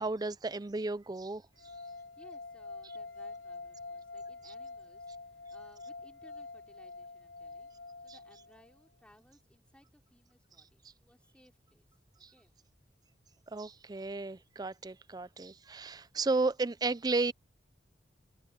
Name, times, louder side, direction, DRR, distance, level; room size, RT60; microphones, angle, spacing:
voice 1, 0.0-1.4 12.2-12.3 13.5-17.3, right 3 dB, 20° right, 0.5 m, -33 dB
sound 1, 1.6-8.7, left 3 dB, 80° left, 1.1 m, -46 dB
voice 2, 1.9-11.9 12.3-12.5, equal, 5° left, 3.8 m, -63 dB
head